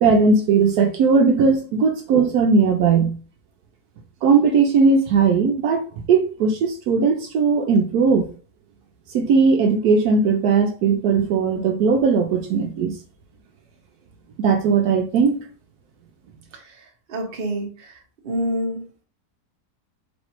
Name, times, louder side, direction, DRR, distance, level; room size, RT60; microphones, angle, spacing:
voice 1, 0.0-3.2 4.2-8.3 9.1-12.9 14.4-15.4, right 5 dB, 75° right, 1.1 m, -18 dB
voice 2, 17.1-18.0 18.2-18.9, equal, 40° right, 0.9 m, -27 dB
3.3 x 2.5 x 4.3 m
omnidirectional pair, 1.7 m